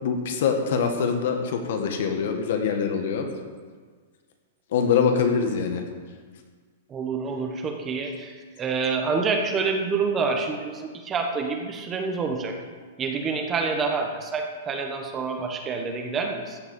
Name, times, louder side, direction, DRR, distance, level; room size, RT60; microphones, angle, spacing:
voice 1, 0.0-3.3 4.7-5.8, left 6 dB, 65° left, 4 dB, 1.8 m, -24 dB
voice 2, 6.9-12.6 13.0-16.6, right 4 dB, 20° right, 3 dB, 1.2 m, -27 dB
14.5 x 5.0 x 8.3 m, 1.5 s
hypercardioid pair, 155°, 0 cm